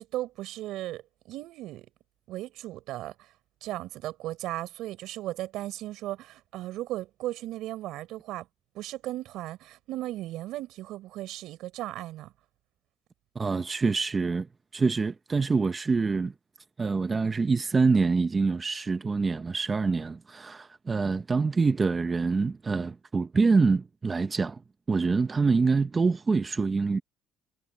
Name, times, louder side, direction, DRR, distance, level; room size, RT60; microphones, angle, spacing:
voice 1, 0.0-1.9 2.3-3.1 3.6-8.5 8.7-12.3, right 15 dB, 75° right, 6.1 m, -36 dB
voice 2, 13.3-14.5 14.7-16.3 16.8-24.6 24.9-27.0, right 4 dB, 25° right, 0.8 m, -25 dB
cardioid pair, 115°, 0 cm